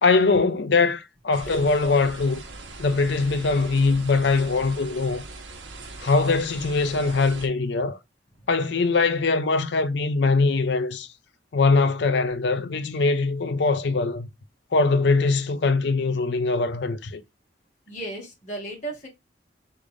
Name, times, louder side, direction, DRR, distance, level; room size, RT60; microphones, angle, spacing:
voice 1, 0.0-2.4 2.8-5.2 6.0-8.0 8.5-11.1 11.5-14.3 14.7-17.2, left 3 dB, 65° left, 0.5 m, -22 dB
sound 1, 1.3-7.5, right 3 dB, 85° right, 1.0 m, -40 dB
voice 2, 17.9-19.1, right 1 dB, 40° left, 1.9 m, -36 dB
3.8 x 3.4 x 3.4 m
head